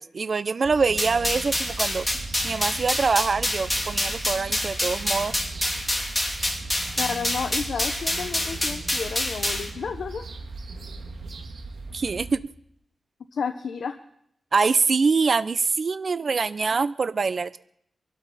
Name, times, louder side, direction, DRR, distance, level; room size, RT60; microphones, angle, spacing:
voice 1, 0.0-2.1 2.4-5.3 11.9-12.4 14.5-17.6, right 4 dB, 55° right, 15 dB, 0.5 m, -24 dB
sound 1, 0.6-12.4, right 3 dB, 75° right, 1.6 m, -38 dB
sound 2, 1.0-9.7, left 1 dB, 10° left, 3.0 m, -27 dB
voice 2, 7.0-10.3 13.3-14.0, left 6 dB, 75° left, 7 dB, 0.9 m, -31 dB
23.5 x 12.0 x 4.1 m, 0.72 s
cardioid pair, 75°, 0 cm